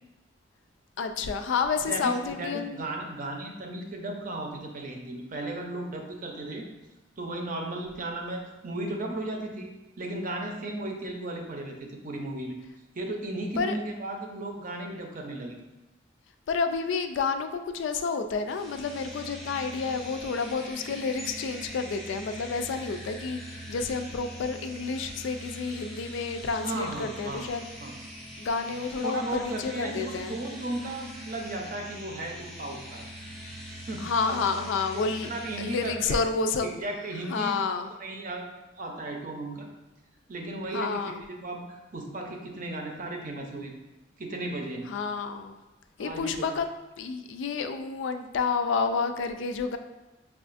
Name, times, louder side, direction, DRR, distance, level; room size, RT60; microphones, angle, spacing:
voice 1, 1.0-2.8 13.6-13.8 16.5-27.6 28.4-30.4 34.0-35.3 35.6-36.8 37.3-37.9 40.7-41.2 44.9-45.6 46.0-46.7 47.0-49.8, left 5 dB, 80° left, 8 dB, 0.3 m, -30 dB
voice 2, 1.8-6.7 7.2-9.7 10.0-12.6 12.9-15.6 26.6-27.5 27.8-28.0 28.8-33.1 33.7-34.6 34.9-37.6 38.0-38.5 38.8-39.7 40.3-43.7 44.2-44.9 46.0-46.5, right 2 dB, 45° right, 2 dB, 0.6 m, -35 dB
sound 1, 18.5-35.9, equal, ahead, 0.7 m, -42 dB
5.5 x 2.4 x 2.5 m, 1.1 s
head